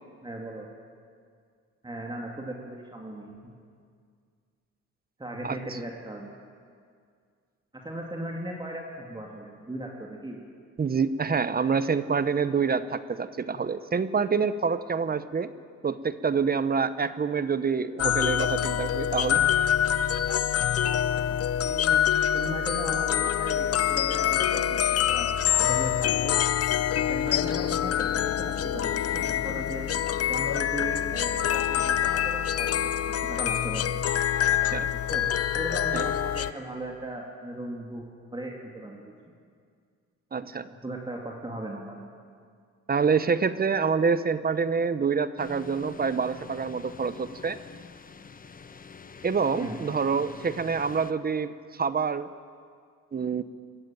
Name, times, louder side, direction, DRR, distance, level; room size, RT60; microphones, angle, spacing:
voice 1, 0.2-0.7 1.8-3.4 5.2-6.3 7.8-10.4 21.6-22.0 22.3-24.8 25.1-25.3 25.6-26.3 27.0-29.9 30.3-32.9 33.2-33.9 35.1-35.3 35.5-38.0 38.3-39.1 40.8-42.1 49.5-49.8, right 1 dB, 15° right, -1 dB, 2.5 m, -37 dB
voice 2, 10.8-15.5 15.8-19.4 34.5-34.9 35.9-36.0 40.3-40.7 42.9-47.6 49.2-52.3 53.1-53.4, right 5 dB, 30° right, 13 dB, 0.9 m, -27 dB
sound 1, 18.0-36.5, left 10 dB, 50° left, 0.7 m, -25 dB
sound 2, 45.4-51.1, left 5 dB, 30° left, 0.9 m, -46 dB
21.5 x 13.5 x 9.1 m, 2.1 s
cardioid pair, 90°, 30 cm